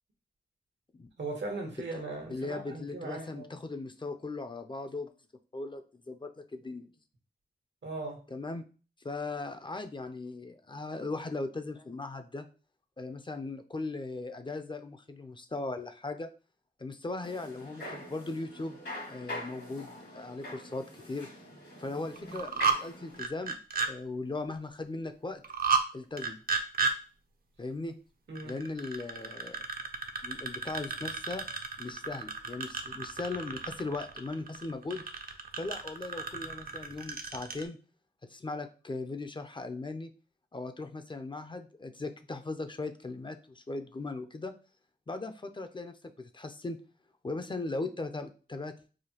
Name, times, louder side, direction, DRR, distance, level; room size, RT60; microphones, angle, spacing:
voice 1, 1.2-3.4 7.8-8.2 28.3-28.6, right 2 dB, 85° right, 2 dB, 1.1 m, -38 dB
voice 2, 2.3-5.1 5.5-6.9 8.3-8.7 9.0-12.5 13.0-16.3 16.8-18.8 19.1-21.3 21.8-23.6 23.9-25.4 25.9-26.4 27.6-28.0 28.4-29.6 30.2-31.4 31.8-35.0 35.6-37.8 38.2-40.1 40.5-44.5 45.1-46.8 47.2-48.7, left 3 dB, 25° left, 8 dB, 0.4 m, -38 dB
sound 1, 17.2-23.2, left 1 dB, 75° left, 1.6 m, -43 dB
sound 2, 22.2-22.8 23.1-23.9 25.4-25.9 26.2-26.9 28.3-37.6, right 5 dB, 55° right, 0.5 m, -32 dB
4.9 x 2.2 x 2.8 m, 0.36 s
wide cardioid pair, 80°, 18 cm